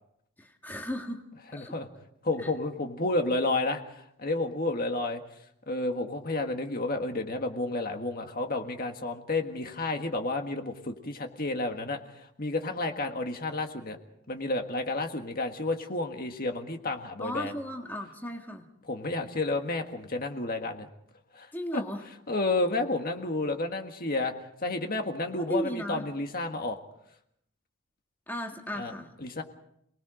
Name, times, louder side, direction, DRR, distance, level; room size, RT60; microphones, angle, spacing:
voice 1, 0.4-1.2 1.5-1.7 2.4-2.5 17.2-18.6 21.5-22.0 25.4-26.0 28.3-29.1, equal, 10° left, 2 dB, 1.8 m, -35 dB
voice 2, 1.5-1.9 2.2-5.2 5.7-14.0 14.3-17.5 18.9-20.9 21.3-21.8 22.3-24.3 24.6-26.8 28.7-28.9 29.2-29.4, left 2 dB, 40° left, 4 dB, 1.7 m, -31 dB
27.5 x 20.0 x 5.1 m, 0.74 s
head